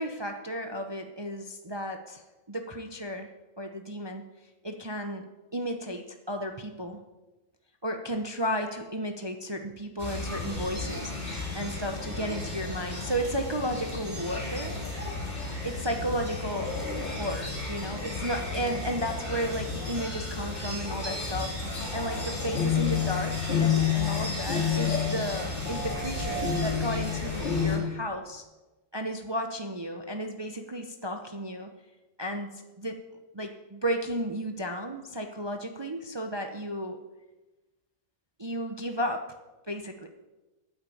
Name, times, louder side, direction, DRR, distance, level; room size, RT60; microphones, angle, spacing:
voice 1, 0.0-3.3 3.6-4.2 4.6-5.3 5.5-7.0 7.8-14.8 15.6-16.7 17.0-28.4 28.9-31.7 32.2-33.0 33.3-37.0 38.4-39.3 39.7-40.1, equal, 30° right, 5 dB, 0.5 m, -33 dB
Crows Bells voices in Bkg Schwedagon, 10.0-27.8, left 5 dB, 30° left, 4.7 m, -31 dB
9.5 x 9.0 x 8.5 m, 1.1 s
omnidirectional pair, 1.8 m